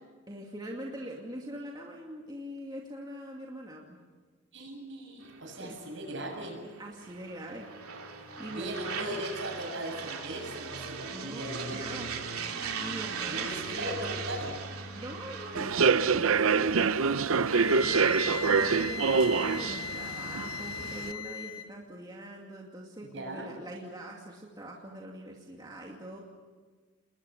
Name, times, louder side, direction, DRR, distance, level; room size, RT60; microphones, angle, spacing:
voice 1, 0.3-4.0 5.5-5.8 6.8-7.7 8.1-9.2 11.1-12.1 12.8-14.2 14.9-26.2, right 1 dB, 20° right, -1 dB, 2.4 m, -43 dB
voice 2, 4.5-6.6 8.5-12.1 13.3-14.6 23.0-23.5, right 1 dB, 60° right, 2 dB, 7.4 m, -38 dB
sound 1, 5.2-20.1, right 5 dB, 90° right, 3.1 m, -40 dB
Human voice / Subway metro underground, 15.5-21.1, right 5 dB, 75° right, 0.7 m, -26 dB
Wind instrument woodwind instrument, 17.5-21.7, left 4 dB, 30° left, 1.7 m, -38 dB
29.5 x 21.0 x 7.0 m, 1.4 s
head